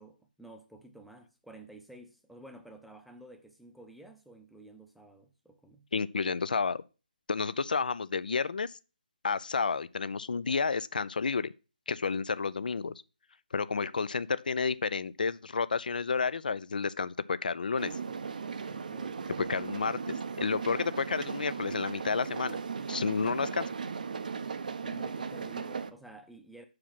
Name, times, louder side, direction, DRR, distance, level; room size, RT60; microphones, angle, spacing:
voice 1, 0.0-5.9 18.7-19.5 24.8-26.6, right 1 dB, ahead, 0.6 m, -52 dB
voice 2, 5.9-6.8 7.3-8.7 9.2-11.5 11.9-12.9 13.5-17.9 19.5-20.0 20.4-22.6 22.9-23.7, left 5 dB, 70° left, 0.4 m, -31 dB
sound 1, 17.8-25.9, right 5 dB, 60° right, 0.6 m, -37 dB
5.8 x 4.9 x 5.9 m
figure-of-eight pair, 150°, 5 cm